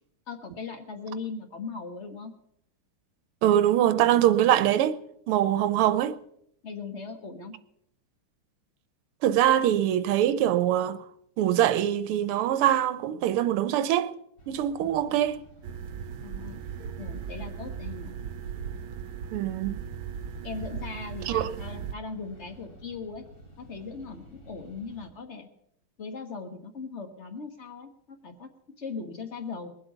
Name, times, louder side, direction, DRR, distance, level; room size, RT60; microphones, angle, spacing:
voice 1, 0.3-2.3 6.6-7.5 16.2-16.6 17.0-18.1 20.4-23.3 23.6-25.5 26.0-29.7, left 4 dB, 35° left, 1.5 m, -39 dB
voice 2, 3.4-5.0 5.3-6.1 9.2-11.0 11.4-14.1 14.5-15.4 19.3-19.8 21.3-21.5, right 11 dB, 90° right, 1.6 m, -23 dB
sound 1, 14.4-25.1, equal, 50° left, 3.2 m, -52 dB
sound 2, 15.6-21.9, right 7 dB, 75° right, 1.4 m, -37 dB
21.0 x 8.0 x 5.5 m
omnidirectional pair, 2.4 m